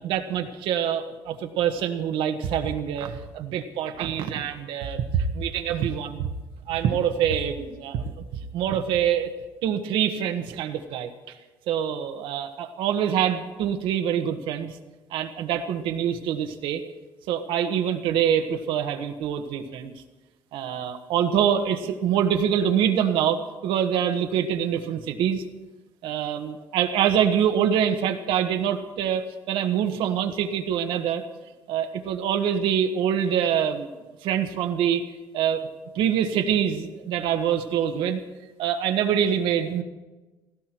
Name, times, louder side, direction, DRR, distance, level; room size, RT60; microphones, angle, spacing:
voice 1, 0.0-6.3 6.7-8.2 8.5-9.3 9.6-11.3 11.7-14.8 15.1-16.8 17.3-19.9 20.5-25.4 26.0-31.2 31.7-33.9 34.2-35.0 35.3-35.6 35.9-38.2 38.6-39.8, right 9 dB, 85° right, 6 dB, 1.4 m, -25 dB
17.0 x 16.0 x 4.5 m, 1.2 s
cardioid pair, 120°, 8 cm